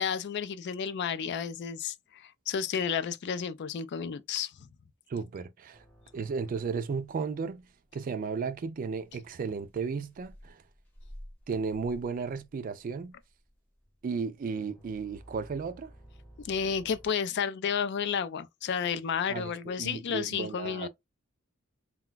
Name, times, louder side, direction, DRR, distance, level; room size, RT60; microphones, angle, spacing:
voice 1, 0.0-4.5 16.4-20.9, left 7 dB, 55° left, 0.3 m, -32 dB
voice 2, 5.1-5.8 6.1-7.6 7.9-10.6 11.5-13.1 14.0-15.9 19.3-19.5 19.8-20.9, right 5 dB, 40° right, 0.3 m, -34 dB
sound 1, 5.7-17.1, equal, 10° left, 0.8 m, -54 dB
2.3 x 2.2 x 3.8 m
head